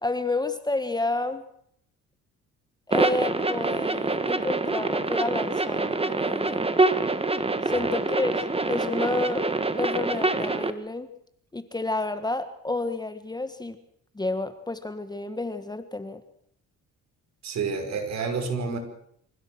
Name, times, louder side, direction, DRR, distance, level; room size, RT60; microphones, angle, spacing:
voice 1, 0.0-1.5 2.9-6.7 7.7-9.5 9.8-11.1 11.5-13.8 14.1-16.2, left 2 dB, 15° left, 10 dB, 1.6 m, -30 dB
sound 1, 2.9-10.7, right 3 dB, 20° right, 1.6 m, -26 dB
voice 2, 17.4-18.8, right 5 dB, 60° right, 5 dB, 5.6 m, -29 dB
25.5 x 16.0 x 7.8 m, 0.69 s
cardioid pair, 105°, 31 cm